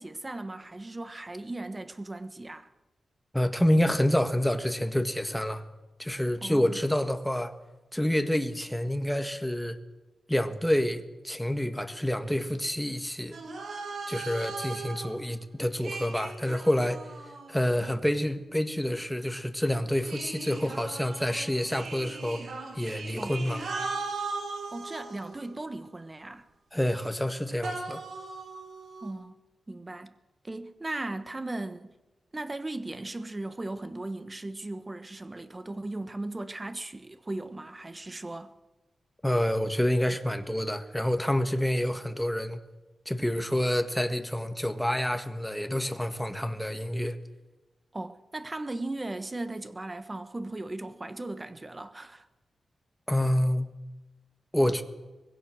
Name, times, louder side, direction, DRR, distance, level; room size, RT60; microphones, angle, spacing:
voice 1, 0.0-2.7 6.4-6.8 23.2-23.4 24.7-26.4 29.0-29.4 29.7-30.1 30.4-31.9 32.3-38.5 47.9-52.3, right 2 dB, 20° right, 1.3 m, -37 dB
voice 2, 3.3-5.6 6.0-7.5 7.9-9.8 10.3-13.4 14.1-17.0 17.5-22.4 22.7-23.6 26.7-28.0 39.2-42.6 43.0-47.2 53.1-53.7 54.5-54.8, left 1 dB, 5° left, 1.5 m, -28 dB
sound 1, 13.3-15.1 15.8-18.0 20.0-25.6 27.6-29.1, right 3 dB, 70° right, 5.1 m, -38 dB
24.5 x 21.0 x 6.4 m
wide cardioid pair, 145°, 0 cm